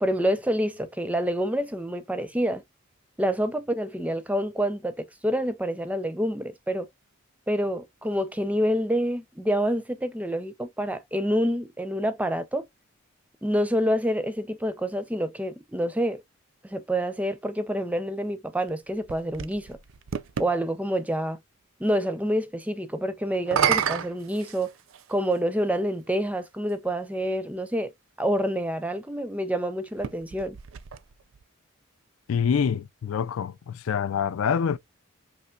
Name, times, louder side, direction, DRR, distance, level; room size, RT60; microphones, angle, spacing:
voice 1, 0.0-2.6 3.2-6.9 7.5-12.6 13.4-16.2 16.6-19.8 20.4-21.4 21.8-24.7 25.1-27.9 28.2-30.6, equal, 5° right, 0.4 m, -27 dB
sound 1, 18.7-20.5 23.3-25.1 26.1-26.2 29.9-31.4, right 7 dB, 70° right, 0.5 m, -30 dB
voice 2, 32.3-34.8, left 7 dB, 80° left, 0.4 m, -26 dB
5.5 x 2.9 x 2.3 m
head